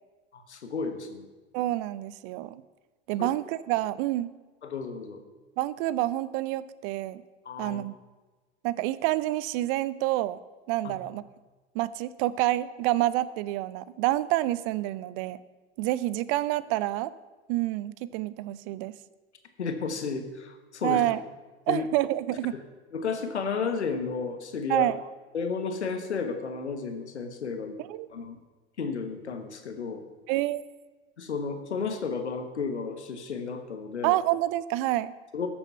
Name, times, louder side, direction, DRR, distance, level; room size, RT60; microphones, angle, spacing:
voice 1, 0.3-1.3 3.2-3.3 4.6-5.2 7.4-7.8 10.8-11.0 19.6-21.0 21.7-21.9 22.9-24.9 25.3-27.8 28.1-28.4 28.8-30.0 31.2-34.2 35.3-35.5, left 5 dB, 85° left, 7 dB, 1.2 m, -32 dB
voice 2, 1.5-2.6 3.1-4.3 5.6-7.2 7.6-7.9 8.6-10.4 10.7-11.2 11.7-15.4 15.8-17.1 17.5-18.9 20.8-21.2 21.7-22.5 24.7-25.0 27.8-28.1 30.3-30.6 34.0-35.1, right 15 dB, 55° right, 18 dB, 0.6 m, -28 dB
13.0 x 7.0 x 5.5 m, 1.3 s
hypercardioid pair, 75°, 33 cm